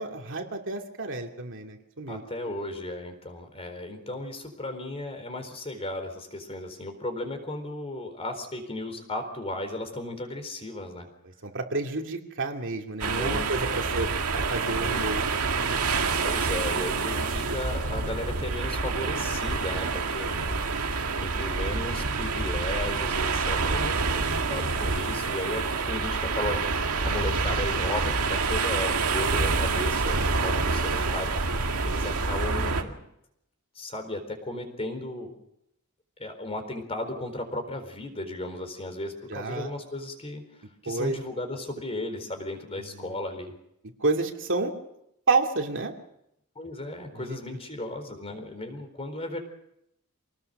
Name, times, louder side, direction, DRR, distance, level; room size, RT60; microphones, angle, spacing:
voice 1, 0.0-2.2 11.4-15.2 15.6-15.8 39.3-39.7 40.9-41.2 44.0-44.7 45.3-45.9 47.1-47.4, right 3 dB, 60° right, 2 dB, 2.7 m, -29 dB
voice 2, 2.1-11.1 13.0-13.5 13.8-13.9 14.6-15.4 16.2-20.6 21.2-26.6 27.0-31.3 31.8-33.0 33.8-35.3 36.2-40.4 40.8-43.5 46.6-49.4, left 1 dB, 25° left, 6 dB, 4.1 m, -35 dB
sound 1, 13.0-32.8, right 4 dB, 85° right, 2.0 m, -27 dB
26.0 x 19.0 x 6.6 m, 0.79 s
head